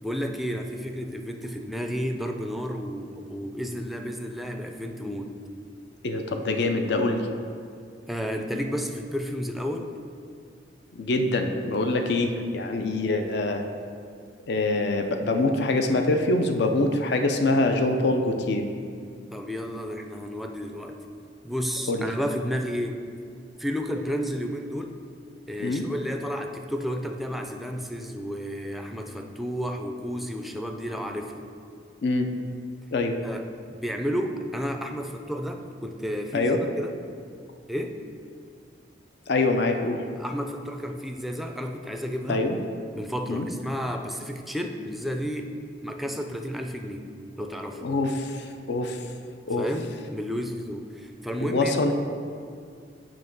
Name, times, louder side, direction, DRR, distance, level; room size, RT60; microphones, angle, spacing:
voice 1, 0.0-5.4 8.1-9.9 19.3-21.0 21.4-23.0 23.6-25.0 25.5-31.5 33.2-36.9 37.7-38.0 40.2-42.5 42.9-45.5 45.8-47.1 47.4-47.8 49.6-51.7, equal, ahead, 4 dB, 0.4 m, -32 dB
voice 2, 6.0-7.3 10.9-13.6 14.5-18.7 21.9-22.1 25.6-25.8 32.0-32.3 32.9-33.2 36.3-36.6 39.3-40.0 42.3-42.6 43.3-43.5 47.8-49.0 49.5-49.7 51.4-51.9, left 2 dB, 65° left, 5 dB, 0.5 m, -24 dB
7.3 x 3.1 x 5.9 m, 2.2 s
head